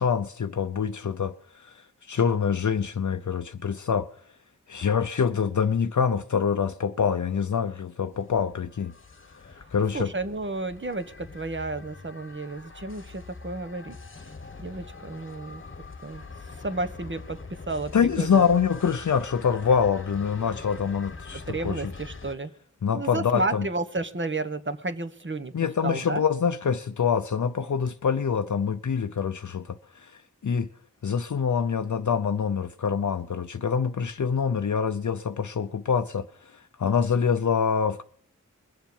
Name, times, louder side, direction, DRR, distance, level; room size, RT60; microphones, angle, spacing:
voice 1, 0.0-4.1 4.7-8.9 9.4-10.1 17.9-21.8 22.8-23.7 25.5-30.7 31.0-38.0, left 6 dB, 65° left, 0.7 m, -25 dB
sound 1, 8.1-22.3, left 4 dB, 40° left, 1.2 m, -43 dB
voice 2, 9.9-14.0 14.6-15.6 16.0-16.2 16.6-17.4 17.7-18.5 21.5-22.5 22.9-25.5 25.8-26.2, right 2 dB, 40° right, 1.3 m, -32 dB
21.5 x 7.3 x 5.4 m
wide cardioid pair, 75°, 31 cm